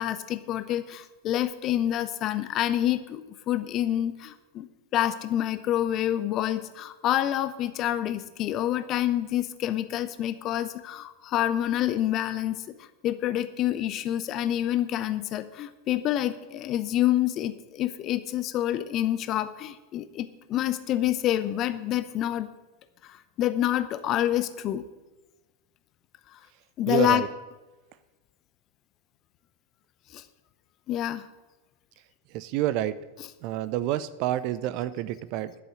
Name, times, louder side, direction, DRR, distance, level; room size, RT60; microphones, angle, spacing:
voice 1, 0.0-4.7 4.9-12.6 13.0-22.5 23.0-24.8 26.8-27.2 30.1-30.2 30.9-31.3, left 12 dB, 35° left, 12 dB, 0.8 m, -27 dB
voice 2, 26.9-27.3 32.3-33.0 33.4-35.5, right 13 dB, 45° right, 15 dB, 0.6 m, -28 dB
12.0 x 6.8 x 8.0 m, 1.1 s
figure-of-eight pair, 90°, 0 cm